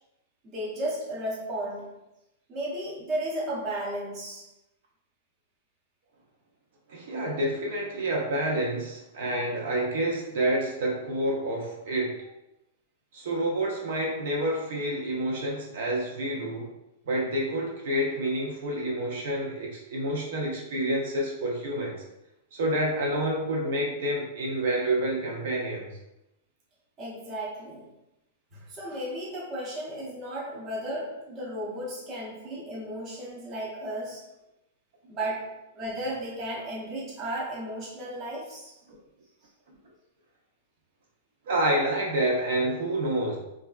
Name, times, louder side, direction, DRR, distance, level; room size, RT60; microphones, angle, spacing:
voice 1, 0.4-2.0 2.5-4.5 27.0-27.9 28.5-34.3 35.1-38.8, right 1 dB, 20° right, -6 dB, 0.7 m, -34 dB
voice 2, 6.9-12.2 13.1-16.7 17.1-22.0 22.5-25.9 41.5-43.4, right 1 dB, 60° right, -2 dB, 0.7 m, -28 dB
3.3 x 2.4 x 2.3 m, 0.87 s
supercardioid pair, 170°, 0 cm